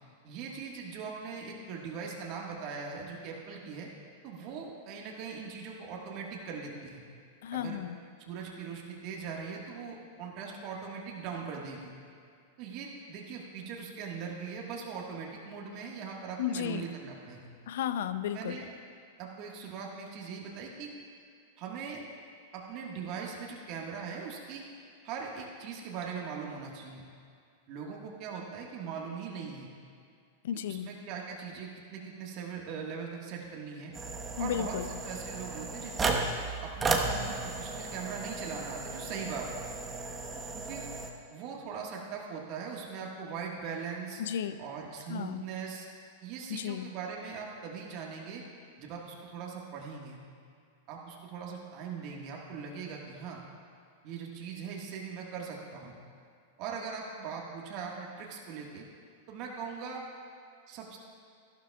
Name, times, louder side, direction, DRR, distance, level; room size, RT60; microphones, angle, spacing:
voice 1, 0.2-3.9 4.2-7.0 7.5-7.8 8.3-11.9 12.6-17.5 18.3-18.7 19.2-20.9 21.6-22.0 22.5-24.7 25.0-27.0 27.7-29.7 30.7-33.9 34.4-34.8 35.0-36.2 36.6-39.7 40.5-40.9 41.3-44.2 44.6-45.9 46.2-48.4 48.8-50.2 50.9-53.4 54.0-56.0 56.6-58.9 59.3-60.0 60.7-61.0, right 6 dB, 50° right, -1 dB, 1.6 m, -40 dB
voice 2, 7.4-8.0 16.4-16.9 17.7-18.6 30.4-30.9 34.4-34.9 44.2-44.6 45.1-45.4 46.5-46.9, left 9 dB, 70° left, 12 dB, 0.5 m, -33 dB
sound 1, 33.9-41.1, right 3 dB, 20° right, 1.2 m, -34 dB
14.0 x 12.0 x 2.4 m, 2.3 s
hypercardioid pair, 105°, 0 cm